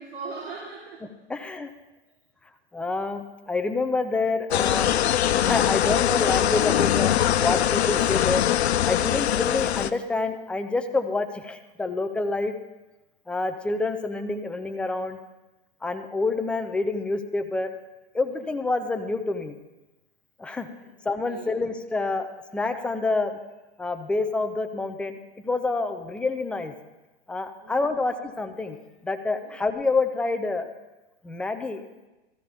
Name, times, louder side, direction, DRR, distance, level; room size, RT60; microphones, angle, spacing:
voice 1, 0.0-1.1 20.8-20.9 21.2-21.7 27.6-28.2 29.4-29.5, right 4 dB, 50° right, -5 dB, 3.3 m, -40 dB
voice 2, 1.3-1.7 2.7-5.0 5.4-7.1 7.4-8.4 8.8-12.5 13.3-15.2 15.8-17.8 18.1-19.6 20.4-20.7 21.0-23.4 23.8-25.2 25.4-26.7 27.3-28.8 29.0-30.7 31.2-32.1, left 3 dB, 5° left, 7 dB, 0.4 m, -27 dB
sound 1, 4.5-9.9, left 11 dB, 70° left, 0.7 m, -22 dB
17.0 x 14.0 x 3.4 m, 1.0 s
hypercardioid pair, 130°, 33 cm